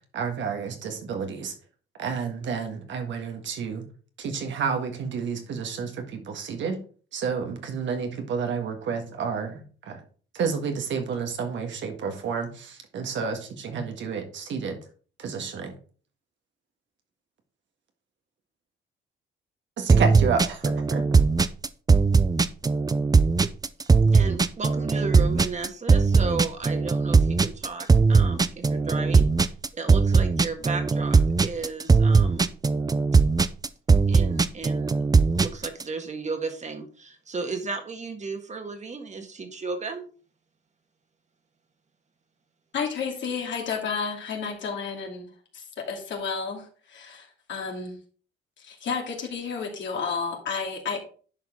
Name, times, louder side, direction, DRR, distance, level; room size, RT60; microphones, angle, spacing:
voice 1, 0.1-1.5 2.0-3.8 4.2-6.8 7.1-10.0 10.3-14.8 15.2-15.7 19.8-21.2, right 6 dB, 70° right, 5 dB, 1.8 m, -30 dB
sound 1, 19.9-35.8, right 4 dB, 20° right, 0.5 m, -19 dB
voice 2, 24.1-29.3 29.7-32.5 34.1-35.0 35.3-40.0, right 4 dB, 35° right, 6 dB, 1.7 m, -34 dB
voice 3, 42.7-48.0 48.6-51.0, left 5 dB, 70° left, 1 dB, 2.5 m, -31 dB
10.5 x 4.8 x 3.7 m, 0.41 s
cardioid pair, 90°, 20 cm